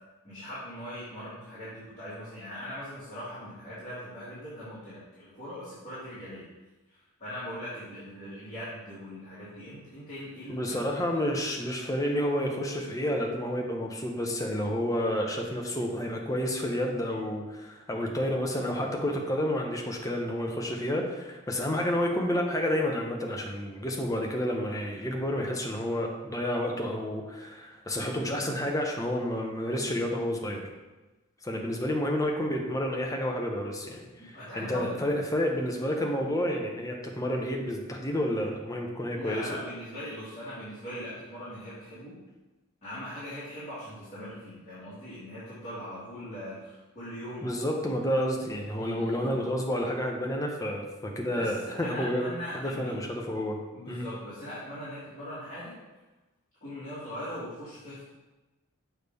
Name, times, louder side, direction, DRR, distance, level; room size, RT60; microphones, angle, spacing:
voice 1, 0.2-6.5 6.9-10.8 11.1-11.3 34.3-35.0 39.1-42.2 42.8-47.5 48.8-49.4 51.3-53.0 53.7-55.8 56.6-58.0, equal, 30° left, -12 dB, 1.9 m, -40 dB
voice 2, 10.5-30.6 31.4-39.5 47.4-52.2 52.5-53.6 53.9-54.1, equal, 15° left, 1 dB, 0.7 m, -30 dB
6.4 x 3.4 x 5.2 m, 1.1 s
head